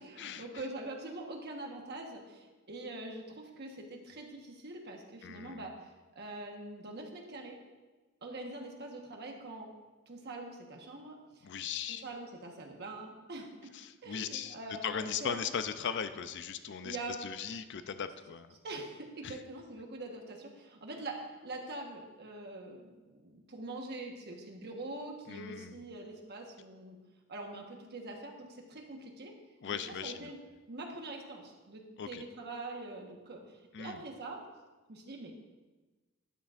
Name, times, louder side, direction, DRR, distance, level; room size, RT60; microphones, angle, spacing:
voice 1, 0.0-5.7 6.1-7.6 8.2-9.7 10.1-11.2 11.9-13.7 14.0-15.4 16.8-17.2 18.6-27.0 27.3-29.3 29.7-30.4 30.7-33.4 33.8-34.4 34.9-35.3, right 2 dB, 55° right, 1 dB, 1.3 m, -44 dB
voice 2, 5.2-5.7 11.4-12.0 13.7-18.5 19.2-19.4 25.3-25.8 29.6-30.3 32.0-32.2 33.7-34.0, left 7 dB, 60° left, 11 dB, 0.5 m, -38 dB
12.0 x 8.7 x 2.5 m, 1.2 s
head